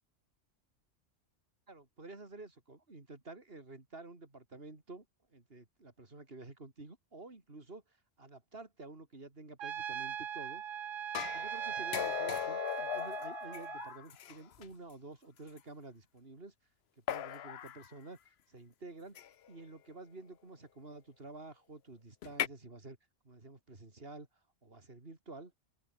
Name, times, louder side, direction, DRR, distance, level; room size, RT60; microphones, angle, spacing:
voice 1, 1.7-10.8 11.1-16.5 17.1-23.0 23.2-24.3 24.6-25.5, right 3 dB, 50° right, 3.7 m, -50 dB
Trumpet, 9.6-13.9, right 9 dB, 80° right, 1.3 m, -40 dB
sound 1, 11.1-14.6 15.6-15.7 17.1-17.9 19.2-19.5 22.2-22.5, left 10 dB, 60° left, 0.9 m, -38 dB
open air
omnidirectional pair, 1.3 m